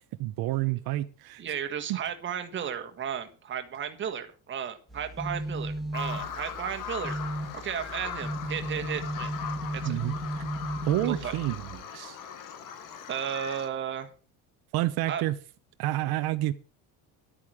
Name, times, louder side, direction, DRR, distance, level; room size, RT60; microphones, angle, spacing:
voice 1, 0.0-1.4 1.9-2.0 9.8-10.1 10.9-12.2 14.7-15.4 15.8-16.5, right 16 dB, 75° right, 10 dB, 0.9 m, -29 dB
voice 2, 1.4-7.2 7.5-9.3 9.7-10.0 11.0-11.4 13.1-14.1 15.1-15.2, right 8 dB, 30° right, 6 dB, 1.5 m, -34 dB
sound 1, 4.9-11.8, right 1 dB, ahead, 2.2 m, -35 dB
Bird vocalization bird call bird song, 5.9-13.7, left 8 dB, 60° left, 1.8 m, -39 dB
11.5 x 8.6 x 6.2 m, 0.37 s
cardioid pair, 170°, 37 cm